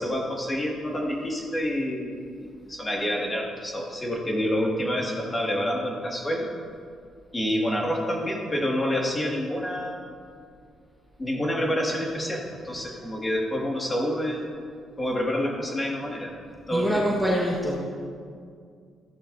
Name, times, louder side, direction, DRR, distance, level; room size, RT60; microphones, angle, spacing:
voice 1, 0.0-2.1 2.4-6.5 7.3-10.0 11.2-14.6 15.0-16.3 16.7-17.0, equal, 20° left, -2 dB, 2.2 m, -28 dB
voice 2, 16.7-17.8, equal, 5° right, -5 dB, 1.6 m, -24 dB
14.5 x 10.5 x 2.8 m, 2.2 s
cardioid pair, 90°, 0 cm